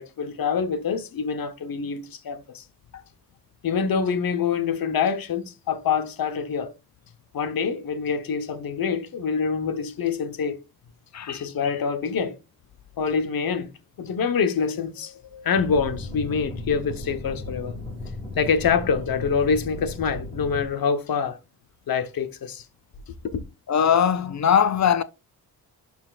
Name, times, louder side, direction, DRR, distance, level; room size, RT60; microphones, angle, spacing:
voice 1, 0.0-2.6 3.6-6.7 7.3-10.6 11.3-12.4 13.0-13.7 14.0-17.7 18.4-21.4 21.9-22.6 23.2-23.4, left 6 dB, 60° left, 1.1 m, -26 dB
voice 2, 11.1-11.5 23.7-25.0, left 8 dB, 45° left, 0.5 m, -21 dB
sound 1, 15.5-20.7, left 2 dB, 15° left, 4.6 m, -35 dB
11.5 x 4.5 x 2.4 m
cardioid pair, 120°, 39 cm